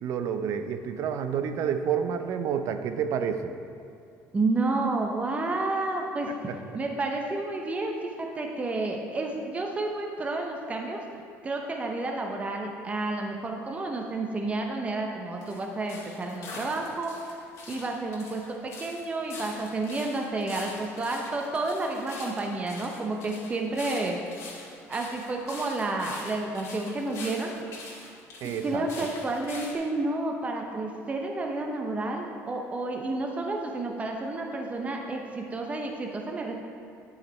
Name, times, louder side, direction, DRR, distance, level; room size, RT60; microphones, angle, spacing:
voice 1, 0.0-3.4 28.4-28.8, right 7 dB, 60° right, 8 dB, 0.6 m, -29 dB
voice 2, 4.3-6.3 6.7-11.0 11.4-17.2 17.7-24.2 24.9-27.5 28.4-36.5, right 2 dB, 20° right, 1 dB, 0.7 m, -30 dB
sound 1, 15.4-29.7, left 3 dB, 55° left, 1.9 m, -44 dB
9.6 x 4.9 x 4.4 m, 2.5 s
cardioid pair, 120°, 6 cm